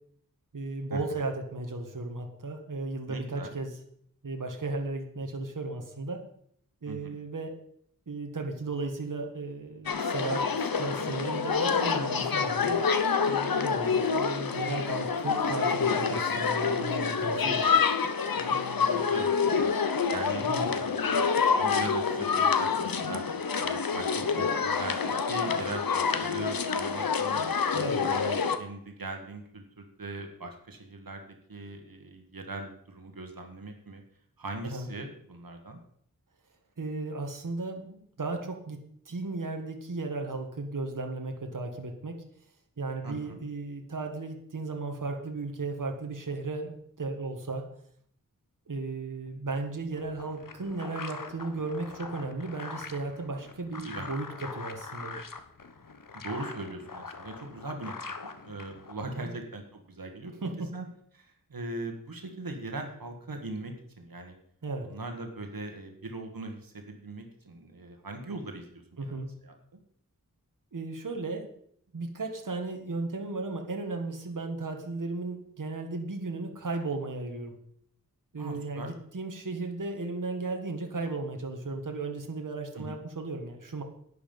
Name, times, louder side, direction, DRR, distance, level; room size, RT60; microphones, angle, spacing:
voice 1, 0.5-3.7 4.2-6.2 6.8-7.5 8.1-12.8 13.3-17.6 20.5-20.7 27.7-28.0 34.7-34.9 36.8-38.8 39.0-42.2 42.8-47.7 48.7-55.2 59.2-59.3 60.4-60.7 64.6-64.9 69.0-69.3 70.7-71.5 71.9-77.5 78.3-83.8, right 3 dB, 65° right, 3 dB, 1.6 m, -35 dB
voice 2, 3.1-3.5 6.9-7.2 18.3-19.7 20.1-21.3 21.6-23.2 23.6-31.2 31.5-34.0 34.4-35.8 43.0-43.4 53.7-54.1 56.1-57.9 58.4-60.3 60.7-60.8 61.1-64.3 64.8-69.5 78.4-78.9 82.7-83.0, right 2 dB, 85° right, 4 dB, 1.7 m, -40 dB
sound 1, 9.9-28.6, left 5 dB, 85° left, 0.9 m, -27 dB
sound 2, 49.9-59.2, left 4 dB, 70° left, 1.2 m, -43 dB
11.0 x 9.8 x 5.4 m, 0.66 s
wide cardioid pair, 65°, 34 cm